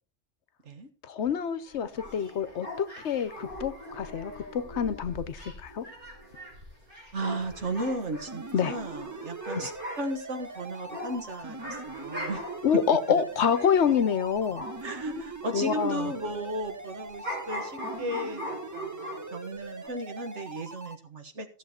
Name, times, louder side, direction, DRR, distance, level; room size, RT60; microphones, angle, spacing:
voice 1, 1.0-5.8 8.5-8.8 9.5-9.7 12.6-14.6 15.1-15.2 15.5-16.1, left 7 dB, 65° left, 1.1 m, -27 dB
sound 1, 1.6-15.1 15.4-19.5 19.8-19.9, equal, 45° right, 4.9 m, -41 dB
voice 2, 7.1-12.4 14.8-21.6, right 1 dB, 70° right, 1.8 m, -35 dB
sound 2, 8.3-20.9, right 3 dB, 25° right, 0.4 m, -42 dB
15.5 x 7.1 x 4.3 m
omnidirectional pair, 1.3 m